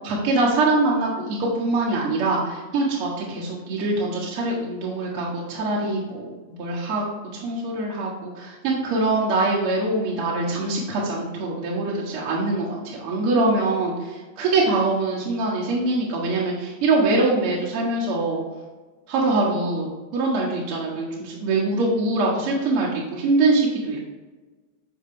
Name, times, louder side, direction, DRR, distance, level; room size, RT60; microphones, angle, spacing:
voice 1, 0.0-6.3 6.6-7.0 7.3-18.4 19.1-24.0, right 2 dB, 40° right, -5 dB, 1.4 m, -23 dB
6.8 x 4.3 x 3.4 m, 1.2 s
figure-of-eight pair, 90°, 0 cm